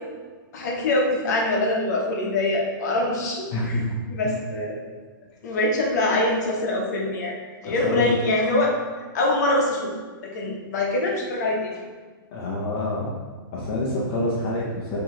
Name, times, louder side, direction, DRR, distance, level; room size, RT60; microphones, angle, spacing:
voice 1, 0.5-3.8 4.1-4.8 5.4-7.3 7.6-8.7 9.1-9.9 10.2-11.8, left 2 dB, 50° left, -1 dB, 0.9 m, -24 dB
voice 2, 3.5-3.8 7.7-8.1 12.3-13.2 13.5-15.0, left 2 dB, 30° left, -5 dB, 0.6 m, -27 dB
4.6 x 2.9 x 3.7 m, 1.5 s
hypercardioid pair, 175°, 12 cm